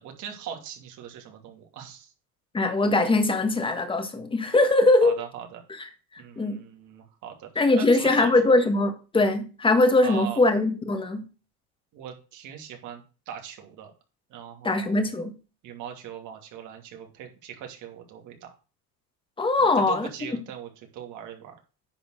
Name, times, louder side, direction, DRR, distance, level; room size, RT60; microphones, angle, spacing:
voice 1, 0.0-2.1 5.0-5.6 6.2-7.5 7.7-8.3 10.0-10.4 11.9-13.9 14.3-15.1 15.6-18.5 19.6-21.5, right 9 dB, 65° right, 2.6 m, -40 dB
voice 2, 2.5-5.2 6.4-6.6 7.6-11.3 14.6-15.3 19.4-20.1, left 2 dB, 15° left, 1.7 m, -21 dB
10.0 x 4.3 x 6.6 m
cardioid pair, 125°, 32 cm